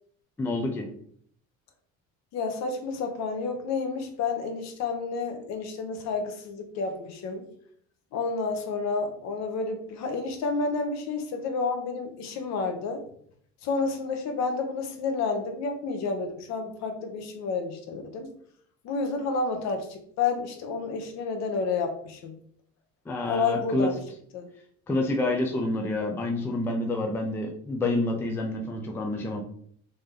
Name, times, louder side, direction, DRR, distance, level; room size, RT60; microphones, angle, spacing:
voice 1, 0.4-0.9 23.1-23.9 24.9-29.4, left 2 dB, 10° left, 2 dB, 0.3 m, -28 dB
voice 2, 2.3-7.4 8.1-13.0 13.6-18.3 18.8-22.3 23.3-24.0 24.3-24.5, left 4 dB, 60° left, 5 dB, 0.8 m, -30 dB
3.3 x 2.8 x 3.6 m, 0.63 s
cardioid pair, 160°, 30 cm